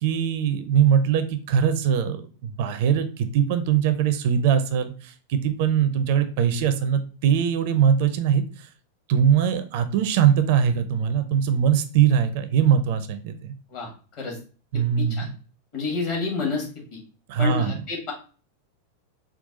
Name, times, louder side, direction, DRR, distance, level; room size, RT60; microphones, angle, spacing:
voice 1, 0.0-8.7 9.1-13.5 14.7-15.3 17.3-17.8, right 8 dB, 50° right, 10 dB, 0.4 m, -21 dB
voice 2, 14.7-15.3 15.7-16.7 16.9-17.0 17.4-18.1, left 4 dB, 45° left, 0 dB, 1.6 m, -29 dB
3.9 x 2.3 x 3.7 m, 0.38 s
figure-of-eight pair, 90°, 0 cm